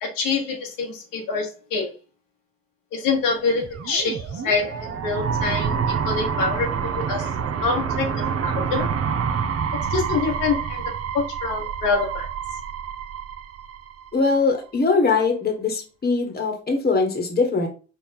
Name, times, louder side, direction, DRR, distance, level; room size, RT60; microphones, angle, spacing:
voice 1, 0.0-1.9 2.9-5.7 6.0-7.3 7.6-8.9 9.9-10.8 11.1-12.3, left 4 dB, 70° left, 1 dB, 1.1 m, -25 dB
sound 1, 3.4-14.3, right 7 dB, 45° right, 0.7 m, -27 dB
voice 2, 14.1-17.7, left 4 dB, 30° left, 4 dB, 1.3 m, -21 dB
4.2 x 2.4 x 3.5 m, 0.34 s
supercardioid pair, 70°, 34 cm